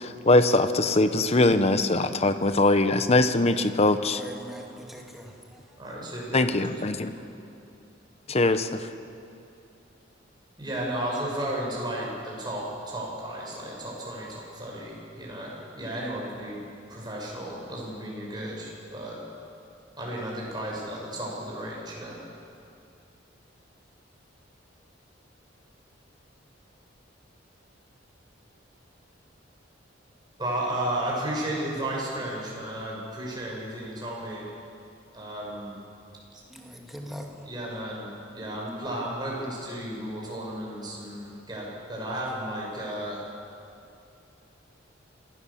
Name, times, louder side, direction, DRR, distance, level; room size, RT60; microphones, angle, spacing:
voice 1, 0.0-4.2 6.3-7.1 8.3-8.7, left 2 dB, 35° left, 10 dB, 0.9 m, -22 dB
voice 2, 4.1-5.8 36.5-37.5, equal, ahead, 0 dB, 2.3 m, -42 dB
voice 3, 5.8-7.1 10.6-16.6 16.9-19.2 20.0-22.1 30.4-34.5 35.1-35.7 37.4-38.1 38.3-43.2, right 1 dB, 25° right, -4 dB, 6.2 m, -33 dB
26.0 x 16.5 x 7.1 m, 2.6 s
head